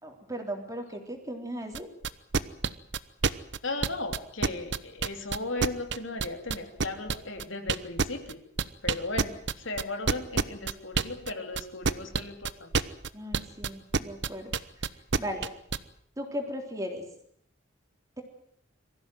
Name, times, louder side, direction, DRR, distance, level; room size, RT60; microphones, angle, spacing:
voice 1, 0.0-1.9 13.1-14.5 15.2-15.5 16.2-17.0, equal, 15° right, 3 dB, 3.6 m, -36 dB
sound 1, 1.7-15.8, right 5 dB, 60° right, 0.9 m, -27 dB
voice 2, 3.6-8.4 8.8-12.7, left 2 dB, 75° left, 5 dB, 3.3 m, -36 dB
23.5 x 15.5 x 9.2 m, 0.68 s
head